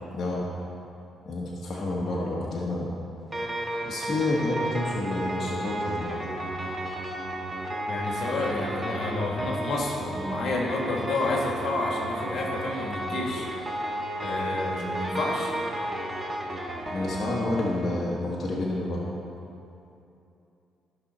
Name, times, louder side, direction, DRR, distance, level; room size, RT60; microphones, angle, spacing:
voice 1, 0.1-0.5 1.2-2.9 3.8-6.3 16.9-19.1, left 2 dB, 45° left, -5 dB, 1.5 m, -29 dB
sound 1, 3.3-18.0, right 1 dB, 20° right, 1.4 m, -33 dB
voice 2, 7.9-13.5 14.2-15.5, left 2 dB, 60° left, -1 dB, 1.8 m, -30 dB
14.0 x 6.1 x 4.3 m, 2.7 s
cardioid pair, 90°, 0 cm